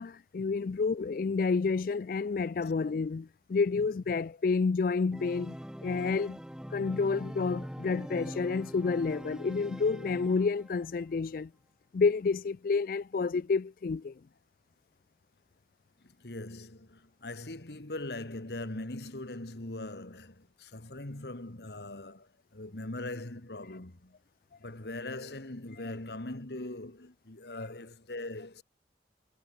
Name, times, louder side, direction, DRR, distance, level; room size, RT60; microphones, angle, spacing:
voice 1, 0.0-5.6 5.8-6.4 6.7-11.5 11.9-14.1 27.6-27.7, left 4 dB, 50° left, 0.4 m, -29 dB
Organ, 5.1-10.8, equal, 5° right, 1.7 m, -42 dB
voice 2, 16.2-24.1 24.6-28.6, left 2 dB, 70° left, 1.8 m, -41 dB
head